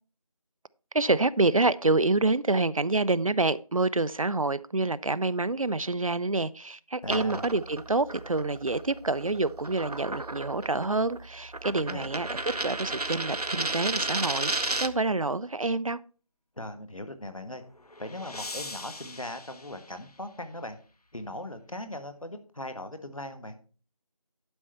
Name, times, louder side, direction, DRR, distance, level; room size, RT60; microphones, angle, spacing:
voice 1, 0.9-12.4 12.6-16.0, right 3 dB, 65° right, 0.4 m, -27 dB
voice 2, 7.0-7.5 11.7-12.1 16.6-17.6 18.0-20.8 21.1-23.6, left 1 dB, 60° left, 1.4 m, -39 dB
sound 1, 7.0-15.1, right 2 dB, 90° right, 0.8 m, -33 dB
sound 2, 17.3-20.7, left 2 dB, 80° left, 1.0 m, -43 dB
11.0 x 5.4 x 4.4 m
figure-of-eight pair, 180°, 19 cm